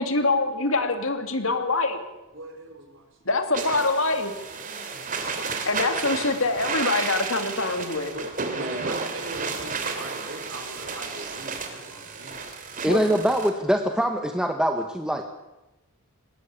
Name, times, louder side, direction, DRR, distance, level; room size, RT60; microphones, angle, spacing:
voice 1, 0.0-2.0 3.2-4.3 5.6-8.1 12.9-13.0, left 3 dB, 65° left, 7 dB, 2.6 m, -24 dB
voice 2, 2.3-3.3 3.6-3.9 4.3-4.7 8.1-8.3 8.5-12.5, right 2 dB, 60° right, 3 dB, 5.0 m, -41 dB
sound 1, 3.5-13.5, right 4 dB, 35° right, 2.8 m, -32 dB
voice 3, 12.8-15.2, equal, 5° right, 5 dB, 1.1 m, -23 dB
20.5 x 18.5 x 8.6 m, 1.0 s
head